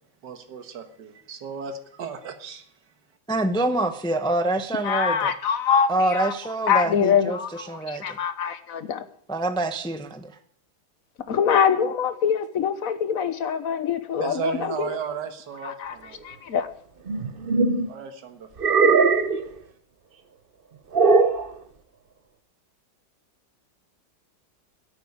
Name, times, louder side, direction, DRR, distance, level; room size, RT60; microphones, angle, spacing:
voice 1, 0.2-2.7 14.2-16.2 17.9-18.5, right 7 dB, 70° right, 7 dB, 2.0 m, -35 dB
voice 2, 3.3-5.3 5.9-7.4 7.7-8.2 9.3-10.3, right 2 dB, 5° left, 8 dB, 0.5 m, -25 dB
voice 3, 4.8-6.3 6.7-9.0 11.3-14.9 15.6-15.9 16.2-16.7, left 7 dB, 55° left, 12 dB, 1.3 m, -24 dB
sound 1, 17.1-17.9 18.6-19.4 20.9-21.5, right 4 dB, 40° right, 0.8 m, -19 dB
11.0 x 8.8 x 9.6 m, 0.66 s
omnidirectional pair, 1.9 m